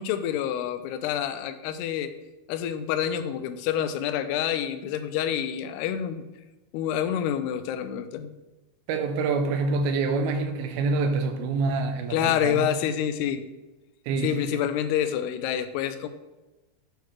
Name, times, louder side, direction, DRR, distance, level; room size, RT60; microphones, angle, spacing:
voice 1, 0.0-2.1 2.5-6.2 6.7-8.3 12.1-13.4 14.2-16.1, left 10 dB, 90° left, 10 dB, 2.6 m, -27 dB
voice 2, 8.9-12.8 14.1-14.6, right 3 dB, 80° right, 7 dB, 2.5 m, -26 dB
8.4 x 6.7 x 3.1 m, 1.1 s
omnidirectional pair, 4.6 m